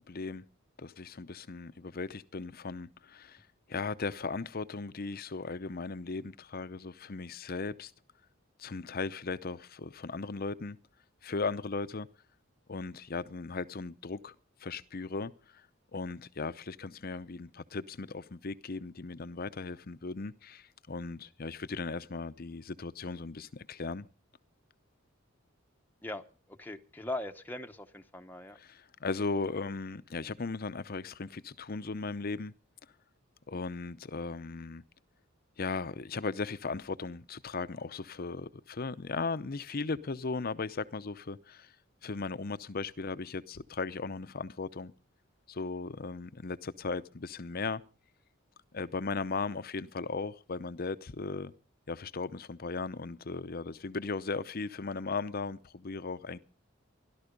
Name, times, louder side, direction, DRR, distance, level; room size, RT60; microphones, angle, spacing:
voice 1, 0.1-0.4 0.8-3.4 3.7-7.9 8.6-10.8 11.2-12.1 12.7-14.3 14.6-15.6 15.9-24.1 28.5-32.5 33.5-34.8 35.6-41.7 42.0-44.9 45.5-47.8 48.7-51.5 51.9-56.4, left 4 dB, 45° left, 0.7 m, -37 dB
voice 2, 26.0-28.6, left 1 dB, 10° left, 0.9 m, -40 dB
17.0 x 12.0 x 5.2 m
head